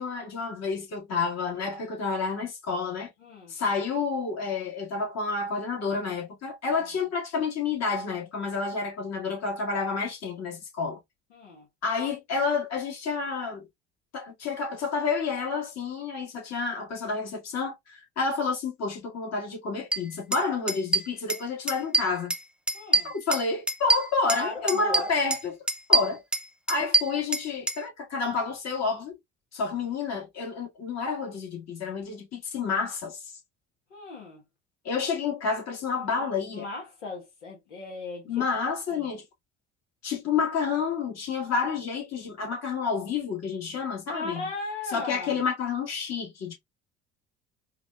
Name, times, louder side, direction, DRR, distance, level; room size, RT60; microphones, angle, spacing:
voice 1, 0.0-3.1 3.5-11.0 11.8-13.7 14.1-22.3 23.0-25.6 25.9-26.2 26.7-29.2 29.5-33.2 34.8-36.7 38.3-39.2 40.0-44.4 44.9-46.5, left 4 dB, 50° left, 1.9 m, -29 dB
voice 2, 3.2-3.6 6.8-7.0 11.3-11.7 22.7-23.1 24.2-25.1 33.9-34.4 35.9-36.2 36.5-38.5 38.9-39.1 44.1-45.4, left 3 dB, 85° left, 1.2 m, -38 dB
sound 1, 19.9-20.0 20.3-20.4 20.7-21.4 21.7-22.4 22.7-24.4 24.7-25.4 25.7-27.8, right 2 dB, 5° right, 0.5 m, -24 dB
4.8 x 2.4 x 2.2 m
hypercardioid pair, 60°, 35 cm